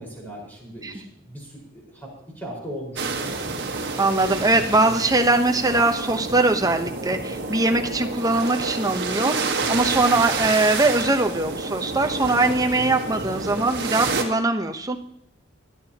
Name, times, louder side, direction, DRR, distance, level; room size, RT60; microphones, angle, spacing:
voice 1, 0.0-2.1 2.3-3.4, equal, 10° left, -4 dB, 4.8 m, -38 dB
sound 1, 3.0-14.2, right 4 dB, 60° right, 1.5 m, -29 dB
voice 2, 4.0-15.0, right 2 dB, 20° right, 5 dB, 0.8 m, -21 dB
26.0 x 9.0 x 2.9 m, 0.78 s
head